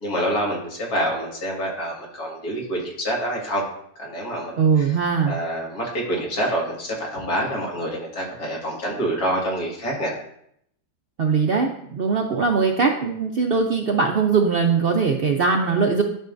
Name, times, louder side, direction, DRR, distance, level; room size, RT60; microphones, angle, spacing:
voice 1, 0.0-3.6 4.0-4.9 5.2-10.1, right 1 dB, 80° left, -3 dB, 2.4 m, -27 dB
voice 2, 4.6-5.4 11.2-16.0, right 5 dB, 65° right, 2 dB, 0.6 m, -21 dB
11.5 x 5.6 x 2.6 m, 0.71 s
omnidirectional pair, 1.6 m